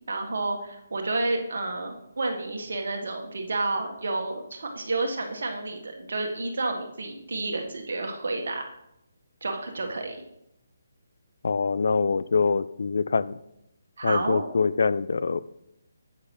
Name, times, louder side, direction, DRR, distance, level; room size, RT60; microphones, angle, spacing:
voice 1, 0.1-8.6 9.4-10.2 14.0-14.4, right 2 dB, 55° right, 2 dB, 1.6 m, -30 dB
voice 2, 11.4-13.4 14.0-15.4, left 5 dB, 55° left, 16 dB, 0.3 m, -24 dB
9.2 x 8.3 x 3.3 m, 0.82 s
figure-of-eight pair, 145°, 0 cm